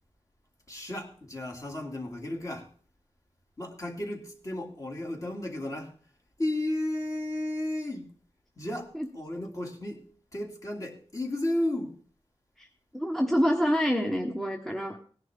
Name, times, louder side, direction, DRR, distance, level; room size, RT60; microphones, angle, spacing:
voice 1, 0.7-2.7 3.6-5.9 6.4-8.1 8.6-12.0, left 1 dB, 30° left, 2.4 m, -33 dB
voice 2, 12.9-15.0, equal, 5° left, 1.1 m, -26 dB
17.5 x 10.5 x 3.6 m
wide cardioid pair, 130°, 11 cm